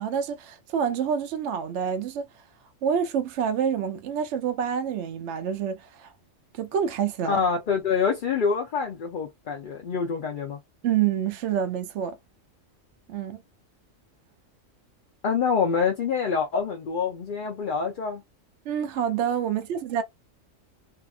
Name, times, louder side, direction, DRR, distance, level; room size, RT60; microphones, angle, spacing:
voice 1, 0.0-2.3 2.8-6.1 6.6-7.4 10.8-12.2 13.1-13.4 18.7-20.0, right 8 dB, 65° right, 0.8 m, -27 dB
voice 2, 7.3-10.6 15.2-18.2, left 5 dB, 55° left, 0.6 m, -26 dB
2.8 x 2.5 x 2.3 m
omnidirectional pair, 1.4 m